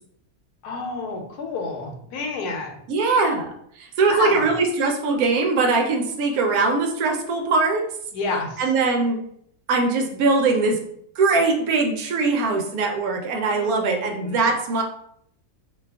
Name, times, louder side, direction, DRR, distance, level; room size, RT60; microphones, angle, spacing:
voice 1, 0.6-2.8 4.1-4.5 8.1-8.6 13.5-14.5, left 3 dB, 80° left, 2 dB, 1.1 m, -29 dB
voice 2, 2.9-3.5 3.8-7.9 8.6-9.2 9.7-10.8 11.2-14.8, right 3 dB, 75° right, 3 dB, 1.0 m, -21 dB
2.7 x 2.3 x 3.4 m, 0.69 s
omnidirectional pair, 1.6 m